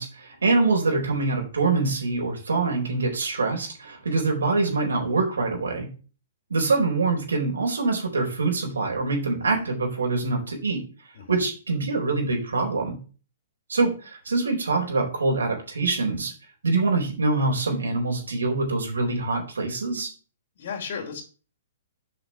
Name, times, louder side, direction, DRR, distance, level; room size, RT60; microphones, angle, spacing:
voice 1, 0.0-5.9 6.5-10.8 11.3-13.0 13.7-16.3 16.6-20.1, right 3 dB, 85° right, 1 dB, 4.5 m, -24 dB
voice 2, 20.6-21.2, left 6 dB, 60° left, 0 dB, 2.8 m, -35 dB
8.0 x 6.1 x 7.2 m, 0.37 s
hypercardioid pair, 130°, 0 cm